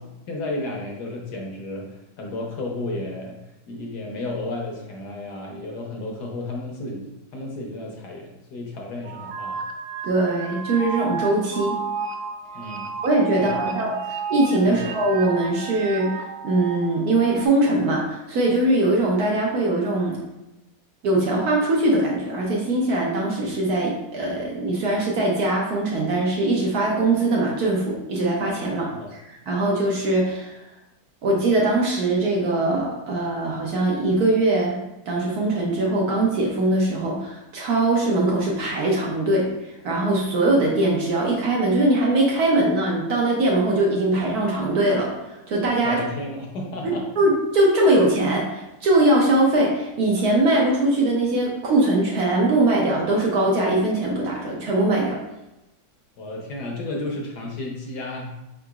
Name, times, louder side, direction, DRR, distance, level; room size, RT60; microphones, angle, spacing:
voice 1, 0.3-3.4 3.7-9.6 12.5-12.9 13.4-13.8 14.6-14.8 28.9-29.1 45.8-47.1 56.2-58.3, left 2 dB, 65° left, 0 dB, 1.2 m, -32 dB
sound 1, 9.0-17.5, right 5 dB, 90° right, 1.4 m, -32 dB
voice 2, 10.0-11.8 13.0-13.9 14.3-16.1 16.4-20.2 21.0-30.6 31.2-34.8 35.1-46.0 46.8-55.2, right 2 dB, 65° right, -2 dB, 1.1 m, -21 dB
5.0 x 3.8 x 2.3 m, 0.95 s
omnidirectional pair, 2.1 m